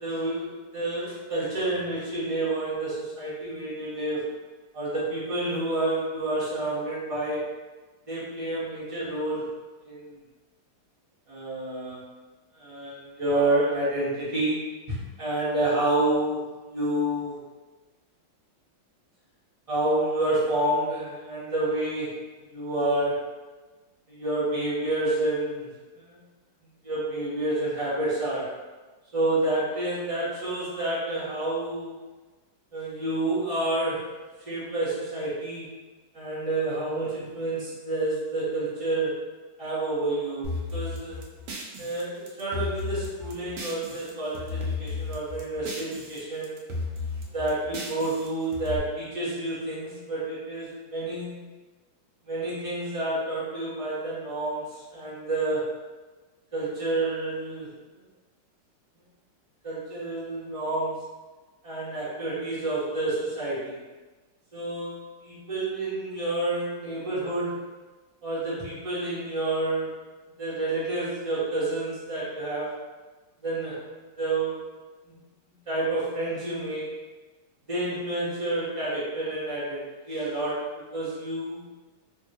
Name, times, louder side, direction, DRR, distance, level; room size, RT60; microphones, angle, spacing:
voice 1, 0.0-4.2 4.7-7.5 8.1-9.5 9.8-10.1 11.3-12.0 12.5-17.4 19.7-22.2 22.5-23.2 24.1-25.7 25.9-26.2 26.8-28.6 29.1-32.0 32.7-34.2 34.5-35.7 36.1-39.2 39.6-41.2 41.8-46.6 47.3-51.4 52.2-55.7 56.5-57.7 59.6-61.0 61.6-63.8 64.5-67.6 68.2-69.9 70.4-72.7 73.4-74.7 75.0-75.2 75.7-76.9 77.7-81.6, right 2 dB, 40° right, -10 dB, 0.4 m, -29 dB
sound 1, 40.4-44.1 44.3-46.2 46.4-48.8, left 3 dB, 75° right, 1.0 m, -34 dB
3.6 x 2.3 x 2.7 m, 1.3 s
omnidirectional pair, 2.3 m